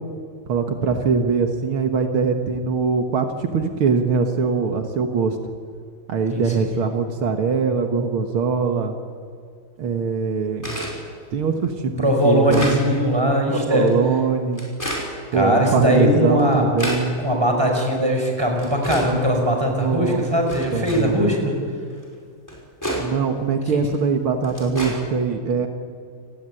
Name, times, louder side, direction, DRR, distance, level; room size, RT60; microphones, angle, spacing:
voice 1, 0.5-5.4 6.1-8.9 9.8-10.8 11.3-12.8 13.5-14.6 15.3-17.2 19.7-20.2 20.7-21.3 23.0-25.7, right 5 dB, 80° right, 5 dB, 2.4 m, -22 dB
voice 2, 6.3-6.6 12.0-13.9 15.3-16.6 17.2-21.6 23.7-23.8, equal, 10° right, 2 dB, 5.5 m, -20 dB
sound 1, 10.6-11.0 11.6-11.7 12.2-12.8 13.7-13.9 14.5-15.1 15.9-16.0 16.4-17.0 17.9-18.0 18.6-19.1 19.8-19.9 20.5-21.0 22.0-22.1 22.5-23.0 23.9-24.0 24.4-24.9, equal, 10° left, 5.6 m, -29 dB
29.0 x 17.0 x 9.8 m, 2.1 s
omnidirectional pair, 2.3 m